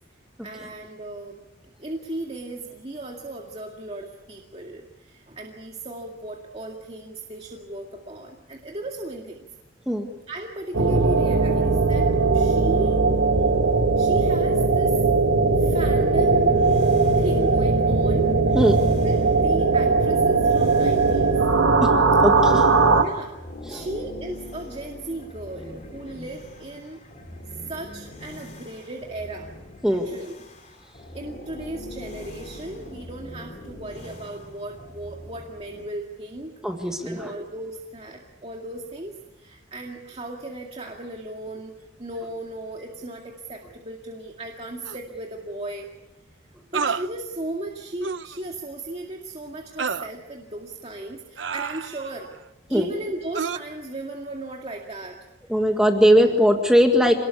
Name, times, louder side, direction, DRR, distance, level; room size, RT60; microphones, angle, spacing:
voice 1, 0.4-1.4 1.8-9.5 10.3-13.1 14.0-15.0 15.5-16.6 17.2-18.6 18.9-21.4 22.9-23.4 23.7-27.3 27.6-29.5 29.9-30.4 31.1-36.5 36.8-41.7 42.0-45.9 46.7-52.3 52.7-55.3 56.1-56.4, right 1 dB, 30° right, 0 dB, 2.2 m, -36 dB
sound 1, 10.7-23.0, right 3 dB, 90° right, 1.9 m, -19 dB
sound 2, 16.0-23.0 23.3-35.8, left 1 dB, 40° left, 3.7 m, -40 dB
voice 2, 22.2-22.7 23.7-23.8 29.8-30.1 36.6-37.3 52.7-52.9 55.5-57.1, equal, 5° right, 3 dB, 1.8 m, -19 dB
sound 3, 44.8-45.0 46.7-47.1 48.0-48.4 49.8-50.1 51.4-52.2 53.3-53.6, right 5 dB, 65° right, 0.8 m, -29 dB
27.5 x 19.5 x 8.4 m, 1.0 s
head